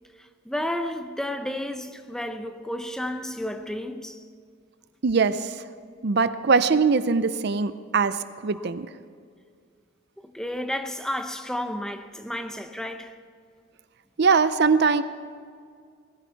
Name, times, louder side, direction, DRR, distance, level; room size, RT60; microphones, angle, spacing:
voice 1, 0.2-4.2 10.2-13.2, left 1 dB, 5° left, 0.6 m, -32 dB
voice 2, 5.0-5.6 6.0-8.9 14.2-15.0, right 4 dB, 55° right, 0.5 m, -22 dB
20.0 x 14.5 x 4.6 m
head